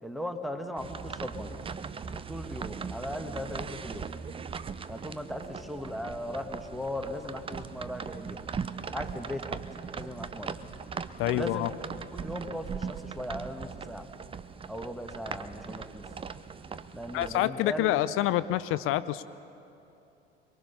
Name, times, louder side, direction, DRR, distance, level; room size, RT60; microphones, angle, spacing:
voice 1, 0.0-1.6 2.3-4.1 4.9-8.4 8.9-9.6 10.0-10.6 11.2-11.7 12.1-14.1 14.7-16.1 16.9-18.0, left 1 dB, ahead, 6 dB, 1.5 m, -38 dB
sound 1, 0.8-17.5, right 6 dB, 15° right, 0.6 m, -39 dB
voice 2, 11.2-11.7 17.1-19.2, left 14 dB, 40° left, 15 dB, 0.6 m, -27 dB
23.0 x 22.5 x 5.7 m, 2.8 s
figure-of-eight pair, 70°, 32 cm